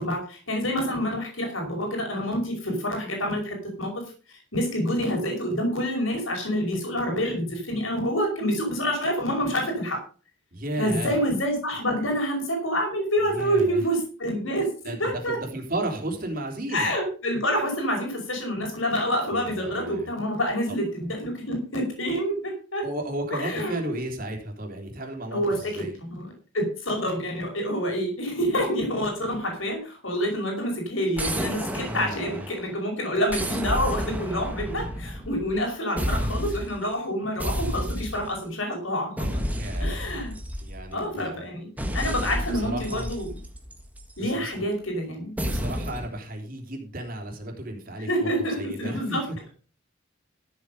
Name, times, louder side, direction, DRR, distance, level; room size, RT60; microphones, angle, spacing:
voice 1, 0.0-4.0 4.5-10.0 10.8-14.7 15.0-15.4 16.7-22.8 23.4-23.9 25.3-26.3 26.5-39.4 39.8-40.3 40.9-41.7 41.9-43.3 44.2-45.3 48.1-49.5, equal, 80° left, 2 dB, 5.5 m, -27 dB
voice 2, 10.5-11.1 13.3-13.8 14.8-16.9 19.3-20.1 20.7-20.8 22.8-25.9 31.8-32.5 39.5-40.2 40.6-41.5 41.8-43.1 44.2-44.6 45.4-48.3 48.6-49.5, right 1 dB, 45° right, 2 dB, 3.6 m, -34 dB
sound 1, 31.2-32.8 33.3-35.6 36.0-36.8 37.4-38.4 39.2-41.0 41.8-44.2 45.4-46.1, equal, 10° right, 1.6 m, -31 dB
13.5 x 8.4 x 5.3 m, 0.37 s
head